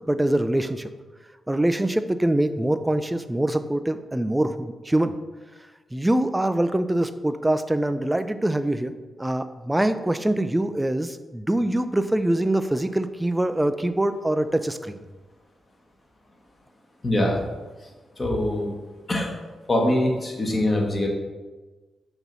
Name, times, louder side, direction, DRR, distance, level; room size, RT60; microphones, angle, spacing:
voice 1, 0.1-0.9 1.5-5.2 5.9-8.9 9.2-15.0, right 1 dB, 15° right, 11 dB, 0.4 m, -24 dB
voice 2, 17.0-17.4 18.2-18.7 19.1-19.3 19.7-21.1, left 1 dB, 35° left, 0 dB, 1.5 m, -23 dB
6.1 x 2.9 x 5.4 m, 1.3 s
cardioid pair, 60°, 0 cm